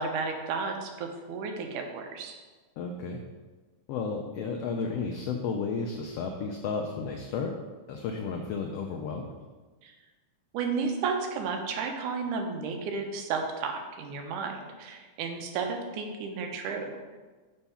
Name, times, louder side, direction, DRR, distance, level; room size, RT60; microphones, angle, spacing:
voice 1, 0.0-2.4 9.8-9.9 10.5-17.2, right 4 dB, 80° right, 4 dB, 2.3 m, -33 dB
voice 2, 2.8-3.2 3.9-7.5 7.9-9.3, left 5 dB, 85° left, 2 dB, 1.4 m, -33 dB
7.0 x 4.6 x 5.5 m, 1.3 s
omnidirectional pair, 3.5 m